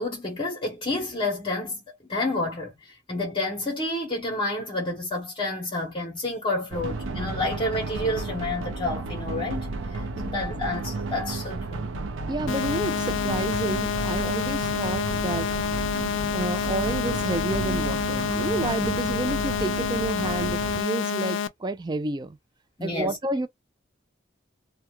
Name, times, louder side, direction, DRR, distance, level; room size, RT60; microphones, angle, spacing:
voice 1, 0.0-9.7 9.9-11.9 22.8-23.2, left 2 dB, 25° left, 0.9 m, -29 dB
sound 1, 6.7-20.8, right 3 dB, 75° right, 0.5 m, -32 dB
voice 2, 12.3-15.5 16.3-22.4 22.8-23.5, right 2 dB, 20° right, 0.3 m, -30 dB
sound 2, 12.5-21.5, left 7 dB, 75° left, 0.4 m, -28 dB
2.3 x 2.2 x 2.9 m
head